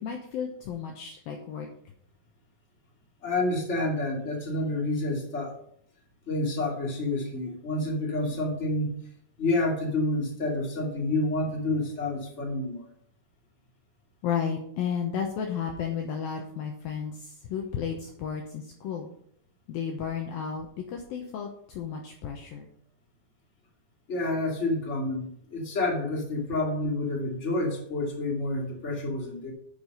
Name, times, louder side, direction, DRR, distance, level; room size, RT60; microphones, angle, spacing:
voice 1, 0.0-1.7 14.2-19.1 19.7-22.7, left 7 dB, 70° left, 2 dB, 2.4 m, -33 dB
voice 2, 3.2-5.6 6.3-9.0 9.4-12.9 24.1-29.5, left 2 dB, 25° left, -1 dB, 1.9 m, -29 dB
9.5 x 6.7 x 5.4 m, 0.66 s
omnidirectional pair, 4.9 m